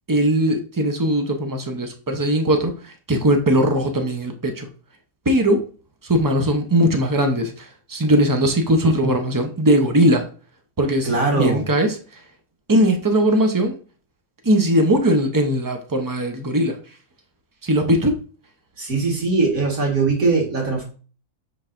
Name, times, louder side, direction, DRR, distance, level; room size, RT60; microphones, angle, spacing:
voice 1, 0.1-4.7 5.3-5.7 6.0-10.3 10.8-11.1 11.4-12.2 12.7-13.8 14.4-16.8 17.6-18.2, equal, 30° right, 5 dB, 0.3 m, -19 dB
voice 2, 11.0-11.6 18.8-20.8, right 3 dB, 65° right, -3 dB, 2.1 m, -20 dB
10.0 x 3.9 x 2.5 m, 0.39 s
omnidirectional pair, 1.6 m